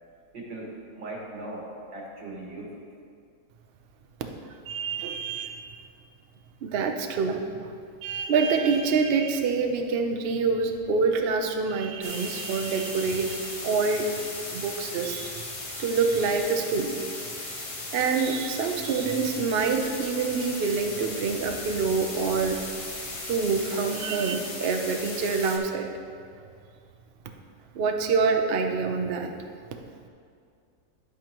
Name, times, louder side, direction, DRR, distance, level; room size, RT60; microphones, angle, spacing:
voice 1, 0.3-2.8, right 2 dB, 85° right, -3 dB, 2.3 m, -39 dB
voice 2, 4.7-5.7 6.6-14.1 14.5-15.5 15.8-17.1 17.9-22.6 23.3-25.9 27.7-29.3, right 4 dB, 70° right, 4 dB, 0.5 m, -26 dB
sound 1, 12.0-25.6, left 2 dB, 35° left, 0.5 m, -37 dB
10.5 x 8.6 x 2.9 m, 2.3 s
omnidirectional pair, 1.9 m